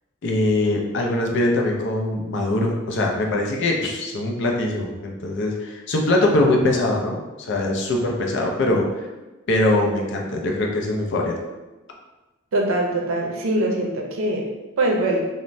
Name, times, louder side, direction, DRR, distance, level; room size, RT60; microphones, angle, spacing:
voice 1, 0.2-9.0 9.5-11.3, left 1 dB, 60° left, 1 dB, 0.4 m, -22 dB
voice 2, 12.5-14.5 14.8-15.2, right 1 dB, 75° right, 0 dB, 0.5 m, -22 dB
3.1 x 2.1 x 2.5 m, 1.1 s
head